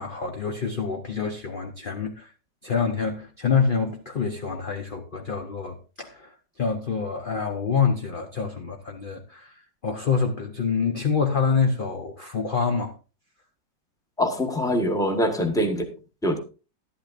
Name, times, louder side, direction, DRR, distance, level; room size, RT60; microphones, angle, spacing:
voice 1, 0.0-2.3 2.6-9.5 9.8-12.9, left 5 dB, 45° left, 0.7 m, -26 dB
voice 2, 14.2-15.9 16.2-16.4, equal, ahead, 1.1 m, -24 dB
12.0 x 11.5 x 2.5 m
omnidirectional pair, 2.0 m